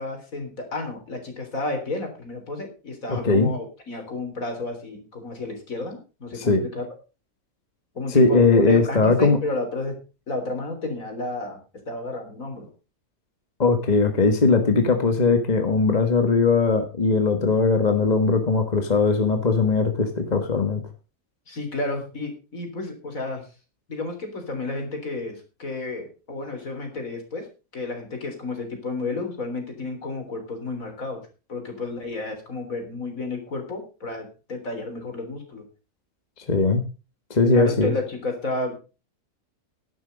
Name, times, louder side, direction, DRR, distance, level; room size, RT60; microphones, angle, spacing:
voice 1, 0.0-6.9 7.9-9.9 10.3-11.6 11.9-12.7 21.5-23.4 23.9-27.5 27.7-31.2 31.5-35.6 37.5-38.8, left 2 dB, 60° left, 4 dB, 3.9 m, -31 dB
voice 2, 3.1-3.5 6.3-6.6 8.1-9.4 13.6-20.8 36.4-36.8 37.3-37.9, left 3 dB, 30° left, 6 dB, 1.4 m, -19 dB
11.0 x 10.5 x 5.2 m, 0.33 s
omnidirectional pair, 1.6 m